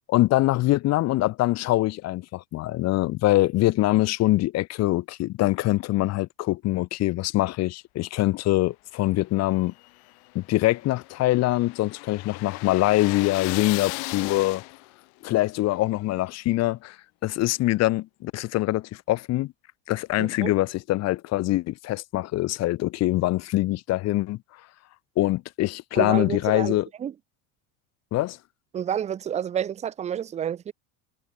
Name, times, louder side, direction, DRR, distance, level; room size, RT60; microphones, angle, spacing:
voice 1, 0.1-9.7 10.3-14.6 15.2-17.0 17.2-19.5 19.9-24.4 25.2-26.9 28.1-28.4, left 17 dB, 40° left, 0.6 m, -24 dB
sound 1, 9.6-15.0, left 36 dB, 70° left, 1.3 m, -36 dB
voice 2, 20.2-20.5 26.0-27.1 28.7-30.7, right 9 dB, 20° right, 0.3 m, -29 dB
supercardioid pair, 120°, 40 cm